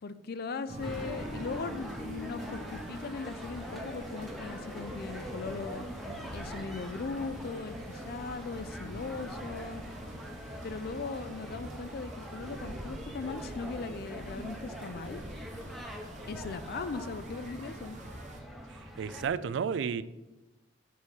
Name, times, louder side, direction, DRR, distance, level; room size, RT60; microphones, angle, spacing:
voice 1, 0.0-5.8 6.3-9.8 10.6-15.2 16.3-18.0, left 4 dB, 55° left, 12 dB, 0.4 m, -39 dB
sound 1, 0.7-18.4, right 1 dB, 40° right, 0.9 m, -47 dB
Side Show, 0.8-19.3, equal, ahead, 0.7 m, -43 dB
voice 2, 19.0-20.0, right 6 dB, 70° right, 15 dB, 0.3 m, -31 dB
6.9 x 4.2 x 4.7 m, 1.0 s
head